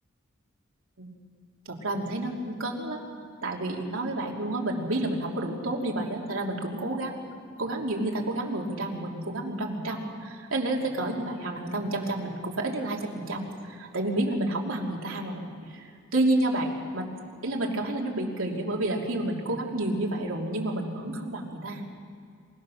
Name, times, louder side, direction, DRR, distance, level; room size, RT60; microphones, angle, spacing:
voice 1, 1.7-3.0 3.4-7.1 7.6-17.0 17.4-21.8, right 1 dB, 80° right, -1 dB, 2.9 m, -30 dB
27.5 x 17.5 x 6.4 m, 2.3 s
head